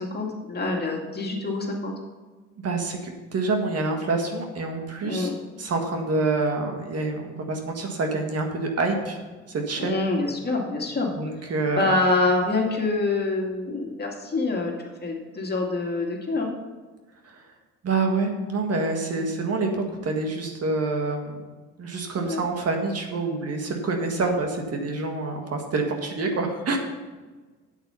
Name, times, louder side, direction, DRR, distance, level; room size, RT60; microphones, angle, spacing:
voice 1, 0.0-1.9 5.0-5.3 9.8-11.1 11.4-16.5 19.1-19.2 22.2-22.4 24.2-24.3, left 2 dB, 35° left, 0 dB, 2.3 m, -26 dB
voice 2, 2.6-5.3 5.6-9.2 9.5-10.0 11.2-11.9 17.2-17.4 17.8-21.4 21.8-26.8, right 3 dB, 55° right, 3 dB, 1.8 m, -27 dB
8.7 x 8.3 x 5.7 m, 1.3 s
cardioid pair, 90°, 30 cm